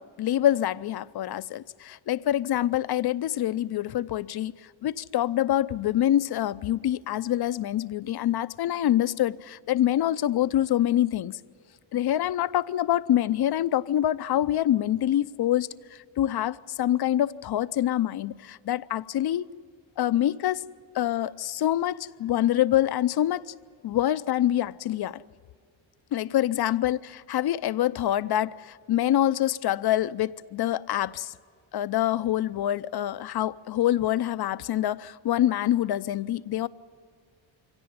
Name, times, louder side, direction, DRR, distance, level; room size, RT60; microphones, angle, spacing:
voice 1, 0.0-4.5 4.8-11.4 11.9-19.5 20.0-20.7 20.9-23.5 23.8-25.2 26.1-27.0 27.3-31.3 31.7-36.7, left 12 dB, 50° left, 0.6 m, -26 dB
24.5 x 17.0 x 9.4 m
cardioid pair, 125°, 49 cm